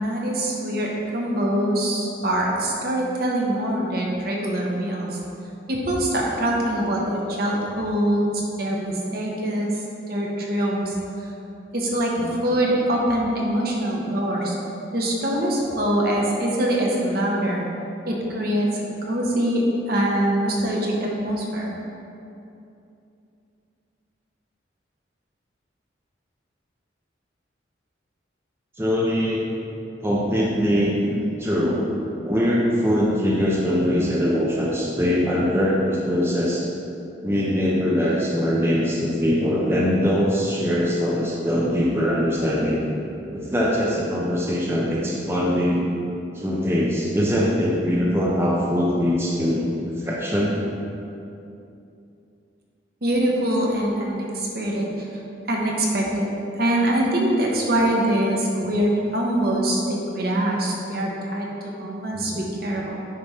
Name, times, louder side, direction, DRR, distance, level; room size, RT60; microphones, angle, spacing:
voice 1, 0.0-5.2 5.7-8.3 8.5-9.8 10.1-11.0 11.7-14.5 14.9-17.7 18.0-18.8 19.1-21.7 53.0-55.1 55.5-62.9, right 1 dB, 50° right, -2 dB, 1.1 m, -24 dB
voice 2, 28.8-29.5 30.0-31.9 32.2-36.7 37.2-42.8 43.3-45.9 46.3-50.6 62.1-62.4, equal, 15° right, -5 dB, 0.6 m, -22 dB
8.5 x 3.1 x 5.6 m, 2.7 s
head